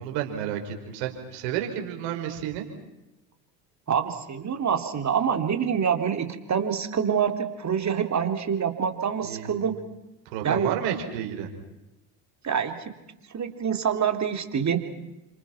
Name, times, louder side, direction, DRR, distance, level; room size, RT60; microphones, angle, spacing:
voice 1, 0.0-2.6 9.3-9.6 10.3-11.5, right 9 dB, 70° right, 3 dB, 5.4 m, -31 dB
voice 2, 3.9-9.7 10.4-10.8 12.4-12.8 13.3-14.8, right 7 dB, 35° right, 6 dB, 3.6 m, -26 dB
30.0 x 26.5 x 6.0 m, 0.98 s
hypercardioid pair, 75°, 47 cm